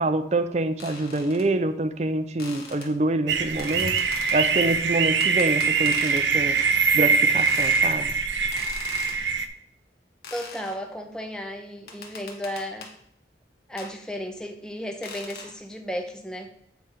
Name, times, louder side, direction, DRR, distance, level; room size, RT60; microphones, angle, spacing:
voice 1, 0.0-4.0 4.3-6.6 6.9-8.1, right 2 dB, 40° right, 11 dB, 0.5 m, -26 dB
sound 1, 0.8-1.5 2.4-2.9 3.6-4.4 5.2-6.3 6.6-6.8 7.4-7.8 8.5-9.2 10.2-10.8 11.9-12.9 13.8-13.9 15.0-15.5, left 4 dB, 60° left, 1.2 m, -40 dB
sound 2, 3.3-9.5, right 5 dB, 85° right, 0.6 m, -23 dB
voice 2, 10.3-12.9 13.7-16.5, equal, 5° left, 3 dB, 0.7 m, -34 dB
8.4 x 3.4 x 5.6 m, 0.70 s
head